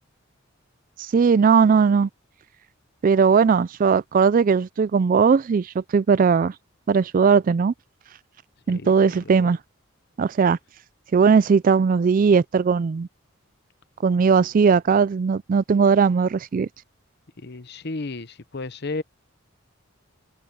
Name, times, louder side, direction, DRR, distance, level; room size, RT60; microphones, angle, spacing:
voice 1, 1.0-2.1 3.0-6.5 6.9-7.7 8.7-9.6 10.2-10.6 11.1-13.1 14.0-16.7, right 5 dB, 40° right, 0.3 m, -18 dB
voice 2, 8.7-9.5 17.4-19.0, left 3 dB, 55° left, 0.9 m, -33 dB
head